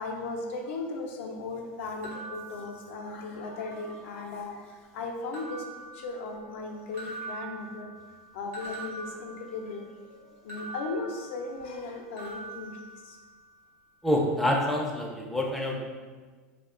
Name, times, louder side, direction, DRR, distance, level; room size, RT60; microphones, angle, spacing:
voice 1, 0.0-4.7 4.9-5.6 6.0-7.9 8.3-10.2 10.4-12.7, left 3 dB, 70° left, 2 dB, 0.4 m, -36 dB
sound 1, 2.0-3.3 3.7-4.5 5.3-6.6 6.9-9.9 10.5-11.9 12.2-13.5, right 3 dB, 65° right, 0.8 m, -44 dB
voice 2, 14.0-15.8, left 1 dB, ahead, -1 dB, 0.4 m, -27 dB
2.5 x 2.1 x 2.4 m, 1.4 s
hypercardioid pair, 105°, 7 cm